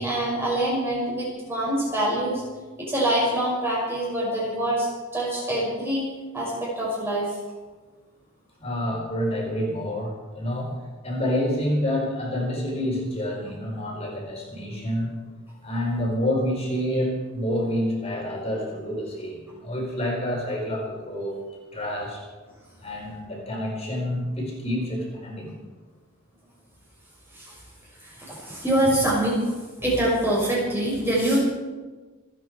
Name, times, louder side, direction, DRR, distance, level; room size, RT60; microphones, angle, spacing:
voice 1, 0.0-2.4 2.8-4.9 5.1-6.0 6.3-7.4 27.3-27.5 28.0-29.4 29.8-31.4, right 1 dB, 10° right, -5 dB, 6.3 m, -25 dB
voice 2, 8.6-10.7 11.0-15.1 15.6-21.4 21.7-22.2 22.8-25.6, equal, 30° left, -2 dB, 4.4 m, -28 dB
28.5 x 9.5 x 4.8 m, 1.3 s
head